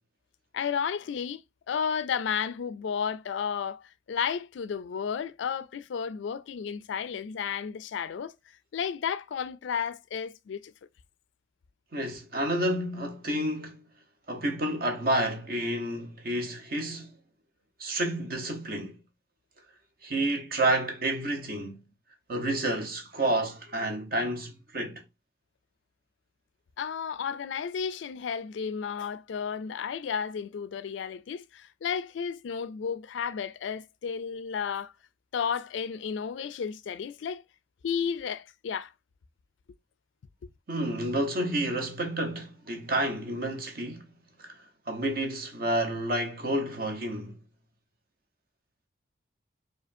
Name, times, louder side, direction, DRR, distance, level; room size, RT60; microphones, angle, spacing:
voice 1, 0.5-1.4 1.7-8.3 8.7-10.7 26.8-34.9 35.3-37.4 37.8-38.9, left 7 dB, 70° left, 0.3 m, -32 dB
voice 2, 11.9-13.8 14.3-17.1 17.8-19.0 20.0-21.8 22.3-25.0 40.7-44.1 44.4-47.4, right 1 dB, 50° right, 1.0 m, -30 dB
4.9 x 2.4 x 2.6 m
head